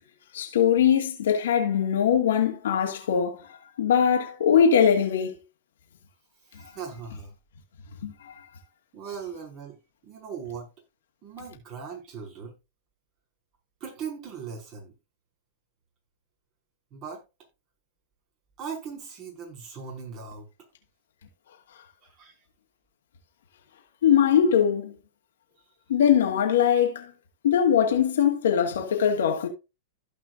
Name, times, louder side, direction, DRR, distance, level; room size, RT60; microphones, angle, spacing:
voice 1, 0.3-3.4 3.8-5.3 8.0-8.3 24.0-24.9 25.9-27.1 27.4-29.5, left 8 dB, 70° left, 2.3 m, -21 dB
voice 2, 6.5-7.3 8.9-10.7 11.2-12.5 13.8-14.9 16.9-17.2 18.6-20.5 22.0-22.3, right 6 dB, 40° right, 5.2 m, -39 dB
15.0 x 5.7 x 2.6 m
hypercardioid pair, 105°, 0 cm